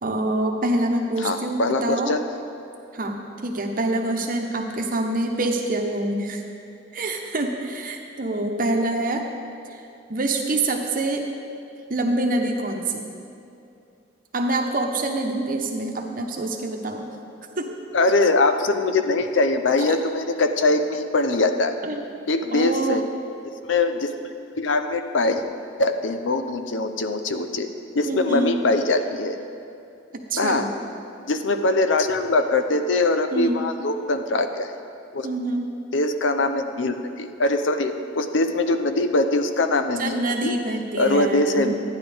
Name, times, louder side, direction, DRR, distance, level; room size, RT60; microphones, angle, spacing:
voice 1, 0.0-2.1 2.9-6.4 6.9-9.2 9.7-11.3 11.9-13.0 14.3-17.1 17.6-17.8 19.8-19.9 21.9-22.0 22.5-23.0 28.1-28.5 30.1-30.7 33.3-33.6 35.2-35.7 40.0-41.7, right 2 dB, 45° right, 2 dB, 0.9 m, -26 dB
voice 2, 1.2-2.2 17.9-21.7 22.3-23.1 23.6-24.1 24.5-25.4 25.8-27.7 27.9-29.4 30.4-30.7 31.2-34.7 35.1-35.3 35.9-40.5 40.9-41.7, left 2 dB, 75° left, 8 dB, 0.6 m, -22 dB
13.0 x 10.0 x 3.5 m, 2.6 s
head